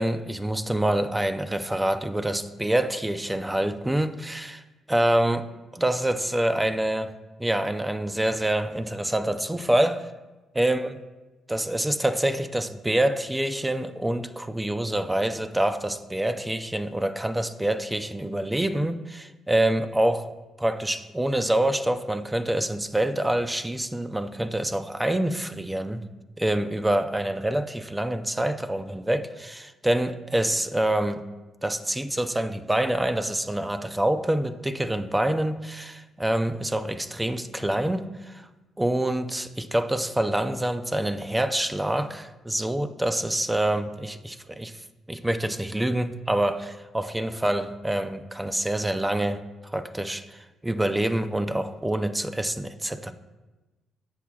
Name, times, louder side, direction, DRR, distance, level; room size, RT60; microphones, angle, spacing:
voice 1, 0.0-4.6 4.9-5.5 5.7-7.1 7.4-10.1 10.5-10.9 11.5-20.3 20.6-26.0 26.4-31.2 31.6-38.5 38.8-44.7 45.1-53.1, right 1 dB, 10° right, 10 dB, 0.5 m, -26 dB
16.5 x 6.0 x 2.3 m, 1.1 s
cardioid pair, 90°, 0 cm